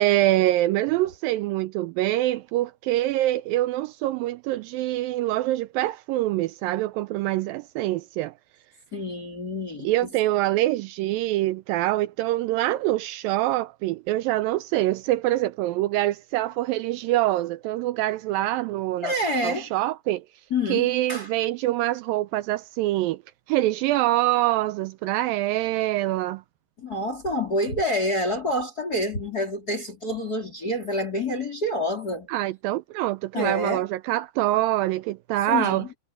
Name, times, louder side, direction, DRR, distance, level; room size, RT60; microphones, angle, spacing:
voice 1, 0.0-8.3 9.8-19.1 19.4-20.2 20.7-23.2 23.5-26.4 32.3-35.9, right 16 dB, 90° right, 2.0 m, -25 dB
voice 2, 8.9-9.9 19.0-19.7 20.5-21.3 26.8-32.3 33.3-33.9 35.5-35.9, left 1 dB, 25° left, 3.9 m, -27 dB
omnidirectional pair, 4.6 m